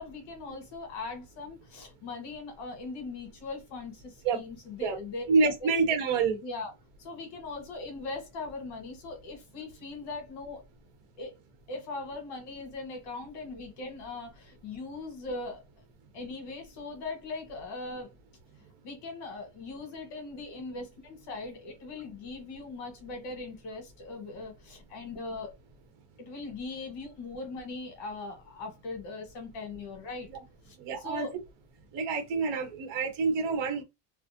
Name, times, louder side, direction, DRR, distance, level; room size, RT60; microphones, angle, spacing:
voice 1, 0.0-5.2 5.6-5.7 6.4-6.7 7.0-10.6 11.2-11.4 11.7-15.6 16.1-18.1 18.8-25.5 26.2-30.3 30.6-31.3, left 3 dB, 55° left, 1.3 m, -40 dB
voice 2, 5.3-6.4 30.8-31.3 31.9-33.8, right 4 dB, 60° right, 1.1 m, -27 dB
2.5 x 2.3 x 2.6 m
cardioid pair, 170°, 48 cm